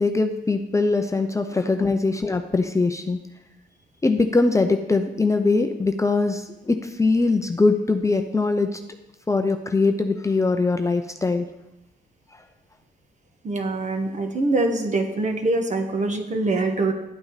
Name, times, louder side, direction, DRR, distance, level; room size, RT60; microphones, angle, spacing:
voice 1, 0.0-3.2 4.0-8.8 9.3-11.5, left 3 dB, 15° left, 5 dB, 0.7 m, -22 dB
voice 2, 13.4-16.9, right 2 dB, 35° right, 5 dB, 1.5 m, -24 dB
11.0 x 8.7 x 4.1 m, 0.95 s
cardioid pair, 90°, 20 cm